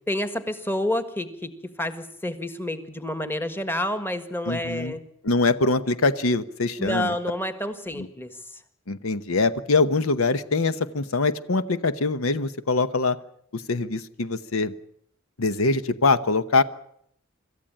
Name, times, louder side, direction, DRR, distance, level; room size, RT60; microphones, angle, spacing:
voice 1, 0.1-5.0 6.8-8.6, left 1 dB, 10° left, 10 dB, 1.6 m, -29 dB
voice 2, 4.5-4.9 5.2-7.1 8.0-8.1 8.9-13.2 13.5-14.7 15.4-16.6, left 3 dB, 80° left, 13 dB, 1.0 m, -23 dB
26.0 x 14.0 x 8.9 m, 0.70 s
head